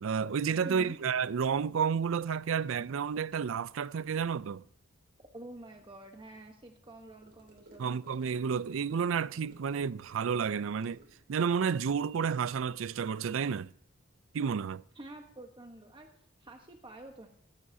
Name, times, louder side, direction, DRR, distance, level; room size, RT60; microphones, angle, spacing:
voice 1, 0.0-4.6 7.8-11.0 11.3-13.7 14.3-14.8, right 6 dB, 70° right, 0.4 m, -31 dB
voice 2, 0.6-1.0 5.3-8.0 14.9-16.1 16.4-17.3, right 1 dB, 25° right, 1.1 m, -48 dB
Gurgling / Car passing by / Sink (filling or washing), 7.2-12.9, right 1 dB, 55° right, 3.3 m, -60 dB
16.5 x 14.5 x 2.7 m
head